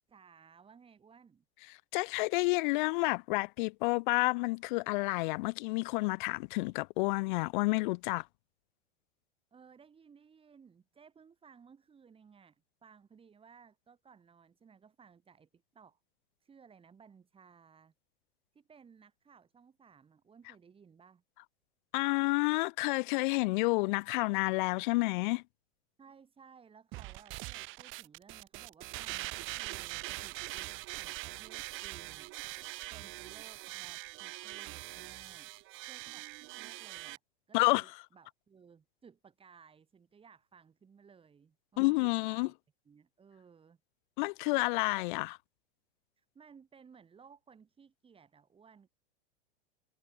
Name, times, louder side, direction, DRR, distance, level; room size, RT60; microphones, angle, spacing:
voice 1, 0.1-1.4 9.5-16.0 16.4-17.9 18.5-21.2 26.0-32.6 32.9-36.3 36.6-37.2 37.5-42.5 42.9-43.8 44.5-44.6 46.2-48.9, right 6 dB, 20° right, 7.7 m, -59 dB
voice 2, 1.9-8.3 21.9-25.4 37.5-37.8 41.8-42.5 44.2-45.4, left 25 dB, 50° left, 1.0 m, -30 dB
sound 1, 26.9-37.2, right 21 dB, 40° right, 2.4 m, -43 dB
hypercardioid pair, 125°, 30 cm